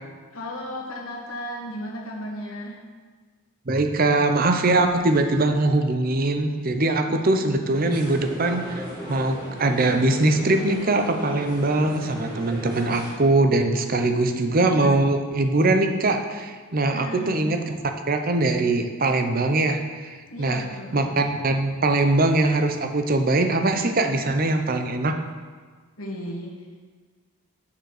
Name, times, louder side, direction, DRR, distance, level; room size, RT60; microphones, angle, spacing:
voice 1, 0.3-2.8 7.1-7.2 13.9-14.6 16.9-17.5 20.3-21.3 26.0-26.9, left 1 dB, 75° left, -3 dB, 1.8 m, -35 dB
voice 2, 3.7-17.8 18.1-20.6 20.9-25.2, right 2 dB, 40° right, 6 dB, 0.7 m, -22 dB
sound 1, 7.7-13.1, equal, 20° right, 2.3 m, -37 dB
7.0 x 6.6 x 6.5 m, 1.5 s
head